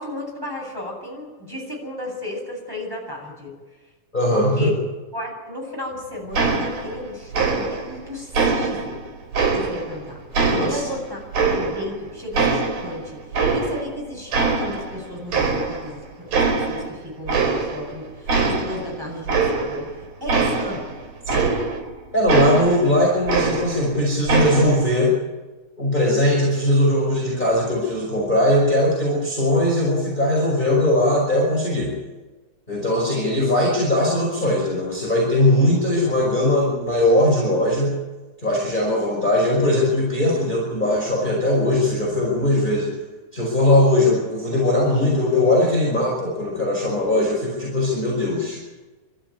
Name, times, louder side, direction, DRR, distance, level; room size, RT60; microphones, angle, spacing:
voice 1, 0.0-3.5 4.3-4.8 5.1-9.0 9.5-10.2 10.6-11.2 11.5-19.9 20.2-20.9, left 1 dB, 5° right, -2 dB, 7.9 m, -34 dB
voice 2, 4.1-4.7 10.5-10.8 21.3-21.5 22.1-25.2 25.8-31.9 32.7-38.0 38.4-42.9 43.3-48.6, left 1 dB, 15° left, -4 dB, 5.3 m, -20 dB
sound 1, 6.3-7.1 7.3-8.0 8.3-10.0 10.3-12.0 12.3-14.0 14.3-15.0 15.3-16.0 16.3-16.9 17.3-17.9 18.3-21.9 22.3-23.9 24.3-24.9, right 4 dB, 70° right, 5.7 m, -23 dB
27.0 x 14.0 x 9.7 m, 1.3 s
omnidirectional pair, 3.5 m